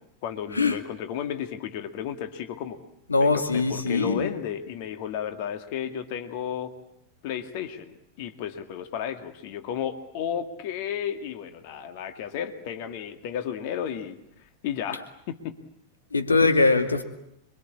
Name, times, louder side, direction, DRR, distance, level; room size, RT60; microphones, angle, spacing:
voice 1, 0.2-2.8 3.2-6.7 7.2-15.6, left 9 dB, 50° left, 2.1 m, -33 dB
voice 2, 3.1-4.3 16.1-17.0, left 3 dB, 75° left, 2.2 m, -21 dB
27.0 x 24.0 x 8.7 m
figure-of-eight pair, 90°, 0 cm